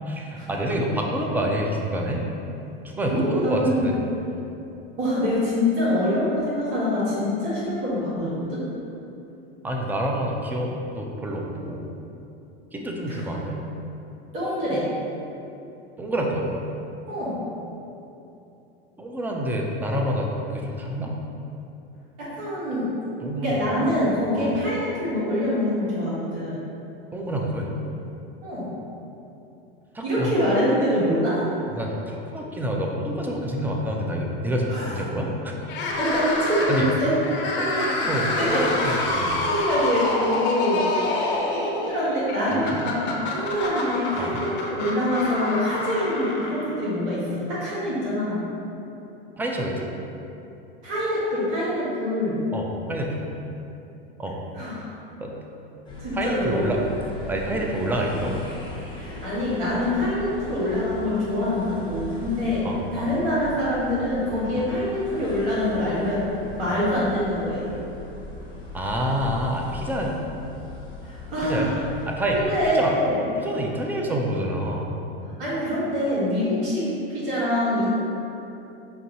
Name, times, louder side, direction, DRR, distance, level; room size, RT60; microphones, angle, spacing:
voice 1, 0.1-2.2 2.8-4.0 9.6-11.8 12.7-13.6 16.0-16.6 19.0-21.1 23.2-23.6 24.4-24.5 27.1-27.7 29.9-30.3 31.8-35.6 36.7-36.9 37.6-39.3 42.5-42.8 44.2-44.4 49.4-49.9 52.5-53.3 54.2-54.4 55.2-55.3 56.2-56.8 57.3-58.4 62.6-63.1 66.7-66.8 68.7-70.2 71.4-71.7 72.1-72.4 72.8-73.0 73.4-75.0, equal, 5° right, 0 dB, 0.3 m, -27 dB
voice 2, 3.1-3.9 5.0-8.6 13.1-13.3 14.3-14.9 17.1-17.4 22.2-22.9 23.4-26.6 28.4-28.7 30.0-31.5 34.7-35.0 36.0-37.2 38.1-38.6 39.0-41.1 41.6-48.4 50.8-52.4 54.5-54.9 56.0-56.9 58.9-62.6 62.9-67.7 71.0-71.8 72.3-73.3 75.4-77.9, left 1 dB, 60° right, -8 dB, 1.4 m, -25 dB
sound 1, 35.6-46.9, left 2 dB, 40° left, 0.7 m, -27 dB
sound 2, 55.8-72.7, left 2 dB, 15° left, 0.9 m, -39 dB
5.5 x 2.5 x 2.9 m, 2.8 s
hypercardioid pair, 100°, 30 cm